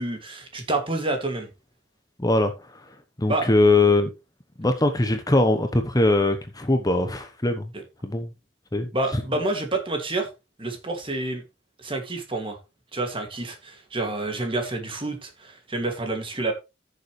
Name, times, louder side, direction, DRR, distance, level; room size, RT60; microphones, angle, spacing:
voice 1, 0.0-1.5 3.3-3.5 7.7-7.8 8.9-10.3 10.6-11.4 11.8-12.6 12.9-16.5, right 2 dB, 30° right, 2.4 m, -28 dB
voice 2, 2.2-2.5 3.2-4.1 4.6-7.7 8.0-8.3 8.7-8.9, left 2 dB, 20° left, 1.0 m, -21 dB
14.5 x 6.9 x 3.3 m
head